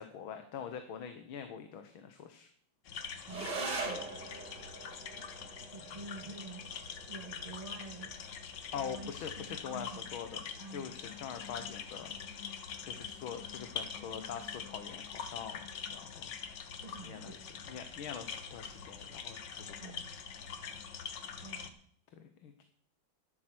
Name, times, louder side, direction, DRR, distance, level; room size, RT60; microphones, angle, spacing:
voice 1, 0.0-2.5 8.7-12.1 12.8-16.3 17.0-19.9 22.1-22.6, left 7 dB, 85° left, 8 dB, 1.9 m, -44 dB
sound 1, 2.9-21.7, left 7 dB, 65° left, 1.7 m, -44 dB
voice 2, 3.3-4.1 5.7-6.7 7.0-8.2 8.7-9.1 9.4-10.0 10.6-10.9 16.8-17.4 19.8-20.1 21.4-21.7, right 2 dB, 20° right, 5 dB, 1.5 m, -47 dB
sound 2, 3.3-12.3, right 3 dB, 55° right, 2.9 m, -45 dB
12.5 x 11.0 x 6.1 m, 0.63 s
omnidirectional pair, 2.2 m